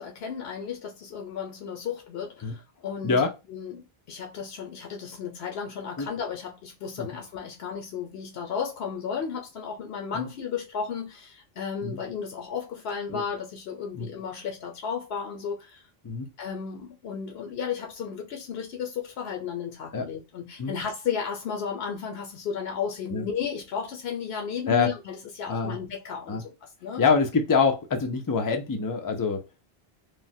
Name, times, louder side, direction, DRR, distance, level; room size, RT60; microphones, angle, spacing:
voice 1, 0.0-3.2 3.5-15.8 16.4-27.0, left 7 dB, 80° left, 0.9 m, -34 dB
voice 2, 27.0-29.4, left 5 dB, 30° left, 0.4 m, -25 dB
3.3 x 2.1 x 2.6 m
omnidirectional pair, 1.0 m